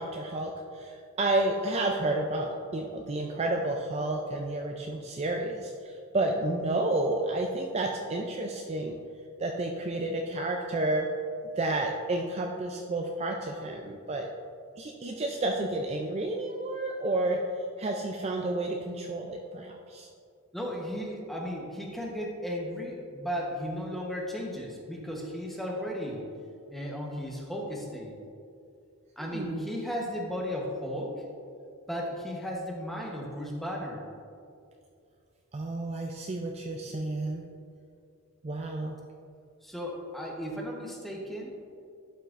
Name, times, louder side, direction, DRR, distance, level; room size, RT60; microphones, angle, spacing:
voice 1, 0.0-9.0 9.4-11.1 11.6-14.3 14.8-17.4 17.8-20.1 29.2-29.7 35.5-37.5 38.4-38.9, right 2 dB, 30° right, 2 dB, 0.4 m, -31 dB
voice 2, 20.5-26.3 26.7-28.1 29.2-31.2 31.9-34.1 39.6-41.5, equal, ahead, -2 dB, 1.0 m, -35 dB
11.5 x 5.7 x 2.5 m, 2.4 s
head